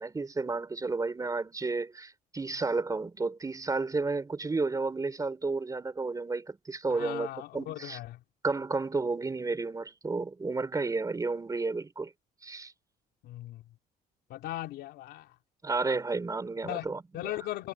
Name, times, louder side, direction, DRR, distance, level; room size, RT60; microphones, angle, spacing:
voice 1, 0.0-8.0 8.4-12.1 12.4-12.7 15.6-17.3, right 3 dB, 20° right, 4.1 m, -32 dB
voice 2, 6.9-8.2 13.2-13.6 14.3-15.3 16.6-16.9 17.1-17.7, left 15 dB, 80° left, 3.9 m, -38 dB
cardioid pair, 110°, 17 cm